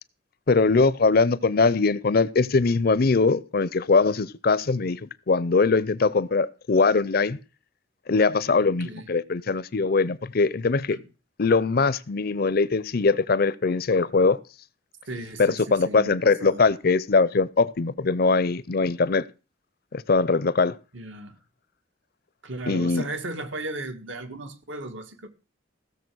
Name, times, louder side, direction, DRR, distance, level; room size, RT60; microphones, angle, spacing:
voice 1, 0.5-7.4 8.1-11.0 11.4-14.4 15.4-19.2 19.9-20.7 22.7-23.0, left 4 dB, 50° left, 0.5 m, -22 dB
voice 2, 8.6-9.1 10.9-11.0 15.1-16.6 20.9-21.4 22.4-25.3, right 2 dB, 70° right, 1.7 m, -36 dB
16.0 x 6.9 x 6.2 m
head